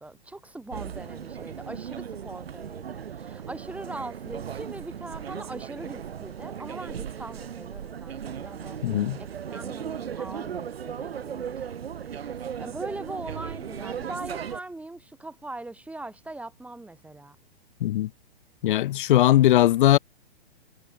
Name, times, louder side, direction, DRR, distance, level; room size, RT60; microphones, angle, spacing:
voice 1, 0.0-8.8 9.2-11.8 12.6-17.4, right 2 dB, 5° right, 4.1 m, -41 dB
sound 1, 0.7-14.6, right 8 dB, 70° right, 6.7 m, -37 dB
voice 2, 8.8-9.2 17.8-18.1 18.6-20.0, left 14 dB, 55° left, 2.0 m, -19 dB
hypercardioid pair, 125°, 31 cm